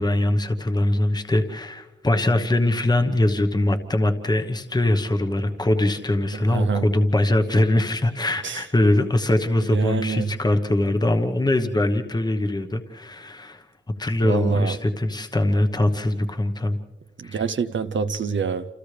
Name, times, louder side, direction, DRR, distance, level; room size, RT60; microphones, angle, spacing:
voice 1, 0.0-13.6 14.0-16.8 17.2-17.4, left 1 dB, 20° left, 1.1 m, -22 dB
voice 2, 6.5-6.9 8.4-8.6 9.6-10.3 14.2-14.8 17.2-18.7, right 5 dB, 70° right, 0.6 m, -25 dB
29.0 x 28.5 x 3.3 m
wide cardioid pair, 100°, 20 cm